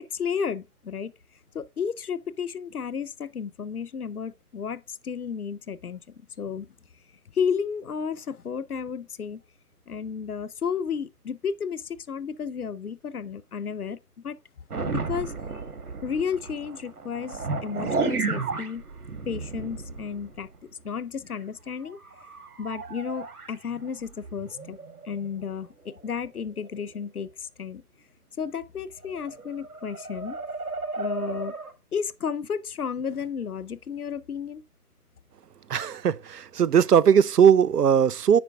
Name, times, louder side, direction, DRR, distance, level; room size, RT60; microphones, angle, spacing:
voice 1, 0.1-1.1 1.5-6.0 6.4-6.7 7.3-9.4 9.9-14.0 14.2-14.4 14.8-15.3 16.0-18.8 19.3-20.5 20.8-22.0 22.6-24.8 25.0-27.8 28.4-30.4 31.0-31.5 31.9-34.6, left 6 dB, 70° left, 0.8 m, -32 dB
sound 1, 14.7-20.6 20.9-21.0 21.3-21.4 21.7-25.5 26.1-26.3 26.6-26.9 29.0-31.7, right 4 dB, 65° right, 1.5 m, -34 dB
voice 2, 35.7-38.4, right 8 dB, 90° right, 0.6 m, -19 dB
9.6 x 4.5 x 3.6 m
figure-of-eight pair, 150°, 46 cm